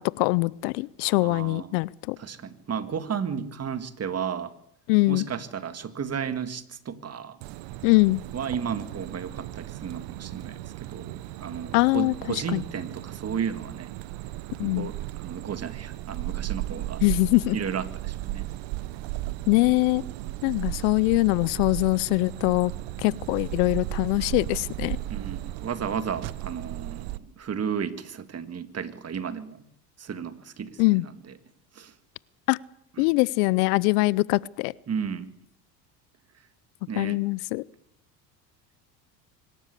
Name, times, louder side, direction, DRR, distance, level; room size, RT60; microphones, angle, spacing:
voice 1, 0.0-2.2 4.9-5.2 7.8-8.2 11.7-12.1 12.5-12.6 14.6-14.9 17.0-17.6 19.5-20.0 20.4-22.7 23.0-25.0 30.8-31.0 32.5-32.6 33.0-34.7 37.0-37.6, left 23 dB, 70° left, 0.7 m, -23 dB
voice 2, 1.1-1.8 2.2-4.5 5.1-7.4 8.3-13.9 14.6-17.0 17.5-18.5 25.1-29.6 30.0-31.4 31.7-31.9 33.0-33.1 34.9-35.3 36.9-37.2, right 7 dB, 30° right, 1.9 m, -33 dB
sound 1, 7.4-27.2, right 16 dB, 60° right, 1.0 m, -36 dB
24.5 x 13.0 x 8.3 m
hypercardioid pair, 90°, 49 cm